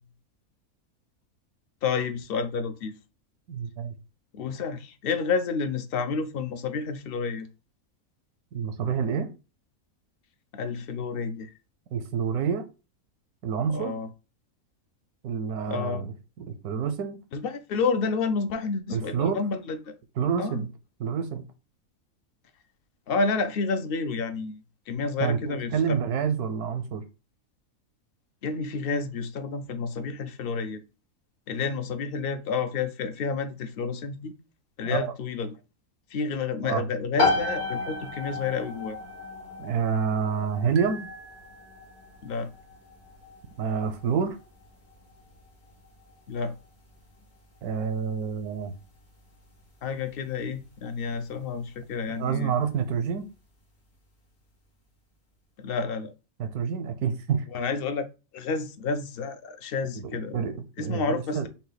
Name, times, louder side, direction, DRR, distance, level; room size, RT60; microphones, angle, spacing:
voice 1, 1.8-3.0 4.3-7.5 10.5-11.5 13.7-14.1 15.7-16.0 17.3-19.9 20.4-20.7 23.1-24.6 24.9-26.0 28.4-30.8 31.5-34.3 34.8-35.6 36.1-39.0 42.2-42.5 46.3-46.5 49.8-52.5 55.6-56.1 57.5-58.1 58.3-60.5 60.8-61.5, left 4 dB, 60° left, 0.6 m, -30 dB
voice 2, 3.5-3.9 8.5-9.3 11.9-12.7 13.4-13.9 15.2-17.2 18.9-19.4 20.2-20.7 21.0-21.4 25.2-27.0 34.8-35.1 36.6-36.8 39.6-41.1 43.6-44.4 47.6-48.7 52.2-53.3 56.4-57.4 60.3-61.5, right 6 dB, 85° right, 1.2 m, -28 dB
sound 1, 37.2-51.7, left 3 dB, 75° left, 2.2 m, -35 dB
sound 2, 40.8-42.3, right 6 dB, 60° right, 0.7 m, -46 dB
5.7 x 2.3 x 3.9 m
omnidirectional pair, 1.6 m